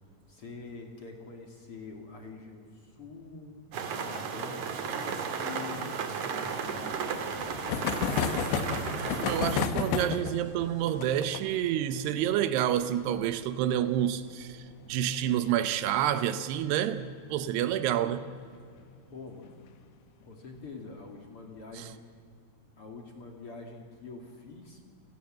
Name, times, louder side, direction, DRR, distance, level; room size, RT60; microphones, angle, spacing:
voice 1, 0.0-3.6 3.9-5.9 6.3-8.6 19.1-19.5 20.3-22.0 22.8-24.8, left 4 dB, 40° left, 2.5 m, -46 dB
sound 1, 3.7-9.7, right 6 dB, 55° right, 2.8 m, -34 dB
sound 2, 6.7-15.9 16.1-16.2 16.5-16.6 16.9-17.0 18.4-18.6 19.3-19.7, left 7 dB, 85° left, 3.5 m, -34 dB
voice 2, 9.2-18.4, right 11 dB, 80° right, 2.9 m, -29 dB
29.5 x 19.0 x 7.5 m
omnidirectional pair, 4.8 m